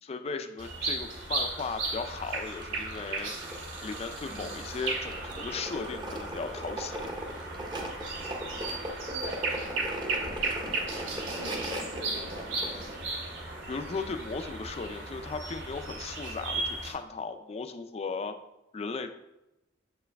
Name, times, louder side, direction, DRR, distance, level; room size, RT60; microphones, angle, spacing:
voice 1, 0.0-3.3 3.8-7.1 13.7-18.4 18.7-19.1, left 4 dB, 30° left, 8 dB, 0.4 m, -36 dB
sound 1, 0.6-16.9, right 3 dB, 85° right, 2.0 m, -36 dB
sound 2, 1.0-12.9, equal, 25° right, 0.8 m, -40 dB
voice 2, 4.2-4.6 9.1-9.5 9.9-10.6 11.1-13.0, right 1 dB, 60° right, -2 dB, 1.7 m, -44 dB
7.3 x 4.6 x 3.4 m, 0.95 s
head